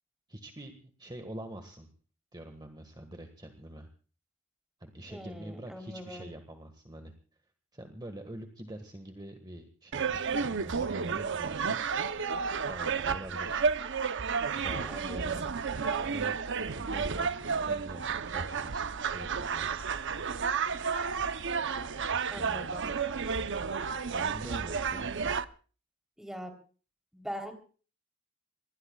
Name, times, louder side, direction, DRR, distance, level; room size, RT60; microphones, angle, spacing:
voice 1, 0.3-0.7 1.0-1.9 2.3-3.9 4.8-7.1 7.7-11.8 12.7-13.6 14.6-15.5 16.0-18.8 19.1-19.8 22.4-22.8 24.1-25.1, right 1 dB, 20° right, 6 dB, 1.7 m, -45 dB
voice 2, 5.1-6.3 14.9-15.3 22.3-22.9 26.2-26.5 27.1-27.5, equal, ahead, 4 dB, 3.6 m, -42 dB
sound 1, 9.9-25.4, right 5 dB, 60° right, 0.8 m, -32 dB
26.0 x 21.0 x 2.4 m, 0.39 s
head